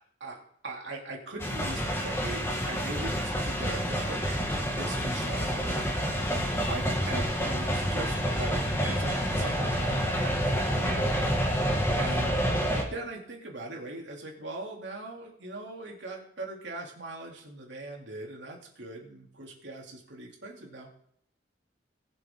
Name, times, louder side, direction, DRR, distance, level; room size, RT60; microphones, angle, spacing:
voice 1, 0.0-6.0 6.4-11.1 11.4-20.9, right 2 dB, 90° right, -1 dB, 3.1 m, -41 dB
sound 1, 1.4-12.8, equal, 15° left, 2.0 m, -28 dB
21.0 x 7.2 x 3.8 m, 0.67 s
head